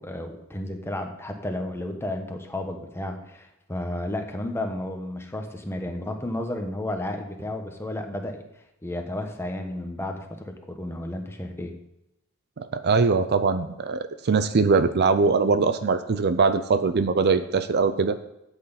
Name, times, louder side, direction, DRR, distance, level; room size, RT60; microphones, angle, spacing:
voice 1, 0.0-8.4 8.8-11.7, left 1 dB, 10° left, 4 dB, 1.2 m, -32 dB
voice 2, 12.6-18.2, right 4 dB, 50° right, 11 dB, 0.5 m, -22 dB
12.5 x 8.1 x 4.1 m, 0.87 s
head